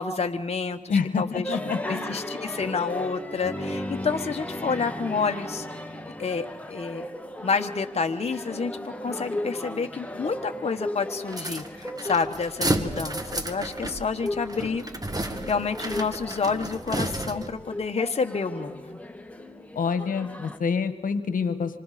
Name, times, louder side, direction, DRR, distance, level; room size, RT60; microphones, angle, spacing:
voice 1, 0.0-1.6 1.8-5.7 6.2-7.1 7.4-14.8 15.5-19.0, left 5 dB, 50° left, 5 dB, 1.1 m, -29 dB
voice 2, 0.9-2.1 19.7-21.8, left 5 dB, 80° left, 10 dB, 1.4 m, -27 dB
sound 1, 1.4-20.6, left 1 dB, 10° left, 2.1 m, -36 dB
sound 2, 11.3-17.6, right 1 dB, 25° right, 2.1 m, -32 dB
26.5 x 25.5 x 4.2 m, 1.2 s
cardioid pair, 50°, 14 cm